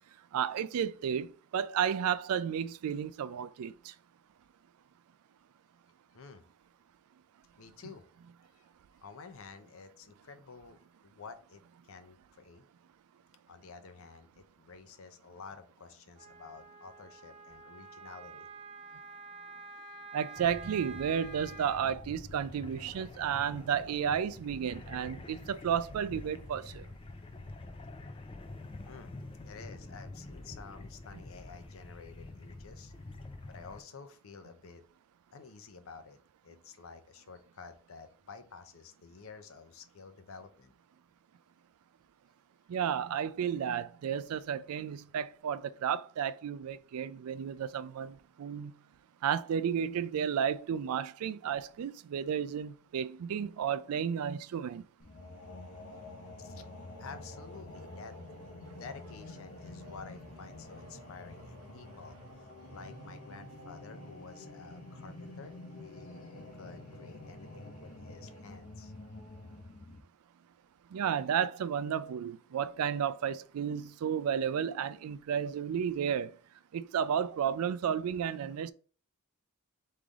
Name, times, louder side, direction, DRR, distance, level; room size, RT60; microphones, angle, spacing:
voice 1, 0.3-3.9 20.1-26.9 42.7-48.7 49.2-54.8 70.9-76.3 76.7-78.7, right 8 dB, 80° right, 0.3 m, -32 dB
voice 2, 6.1-6.5 7.6-8.0 8.5-8.7 9.0-12.6 13.5-18.5 28.8-29.2 29.4-32.9 33.5-34.8 35.3-36.2 36.4-40.7 56.4-56.7 57.0-58.1 58.8-65.5 65.8-68.9, left 5 dB, 65° left, 0.6 m, -51 dB
Wind instrument woodwind instrument, 16.2-21.9, right 4 dB, 30° right, 0.6 m, -48 dB
sound 1, 20.4-33.8, left 2 dB, 25° left, 0.3 m, -47 dB
sound 2, 55.0-70.0, left 2 dB, 80° left, 0.9 m, -48 dB
3.6 x 3.3 x 3.9 m
head